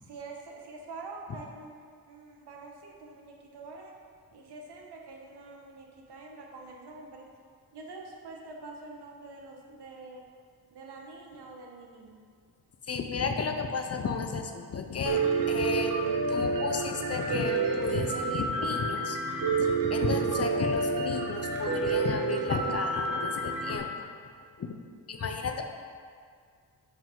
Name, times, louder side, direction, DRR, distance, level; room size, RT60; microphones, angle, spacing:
voice 1, 0.1-4.0 4.3-7.2 7.7-10.3 10.7-12.2 25.4-25.6, right 3 dB, 80° right, 0 dB, 1.1 m, -46 dB
voice 2, 12.9-16.0 16.3-19.2 19.6-24.1 24.6-24.7 25.1-25.6, left 5 dB, 40° left, 5 dB, 0.5 m, -33 dB
Piano, 15.1-23.8, right 4 dB, 55° right, 1.0 m, -29 dB
5.8 x 5.5 x 5.1 m, 2.1 s
wide cardioid pair, 155°, 40 cm